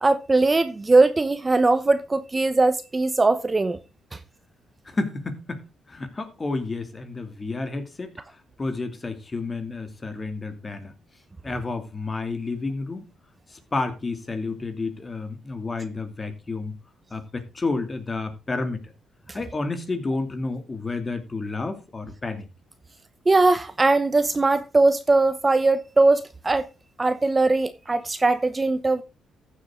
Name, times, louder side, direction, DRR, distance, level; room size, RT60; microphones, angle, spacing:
voice 1, 0.0-3.8 23.3-26.6 27.0-29.0, right 3 dB, 25° right, 0.9 m, -20 dB
voice 2, 4.9-8.2 8.6-10.9 11.4-13.1 13.5-16.8 17.1-18.9 19.3-22.4, left 3 dB, 25° left, 2.4 m, -30 dB
14.5 x 7.4 x 3.7 m
cardioid pair, 90°, 0 cm